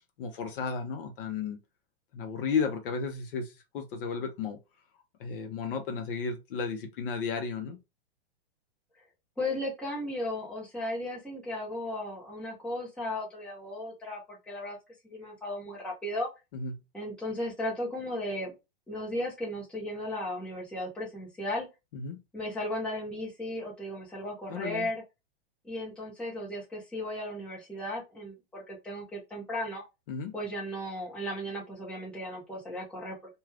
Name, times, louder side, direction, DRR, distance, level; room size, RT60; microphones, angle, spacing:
voice 1, 0.2-1.6 2.1-4.6 5.2-7.8 16.5-16.8 21.9-22.2 24.5-24.9 30.1-30.3, left 5 dB, 55° left, 0.7 m, -33 dB
voice 2, 9.4-14.8 15.0-16.3 16.9-18.5 18.9-21.7 22.3-25.0 25.6-29.8 30.3-33.2, left 1 dB, 5° left, 0.8 m, -35 dB
2.4 x 2.3 x 3.3 m
supercardioid pair, 150°, 32 cm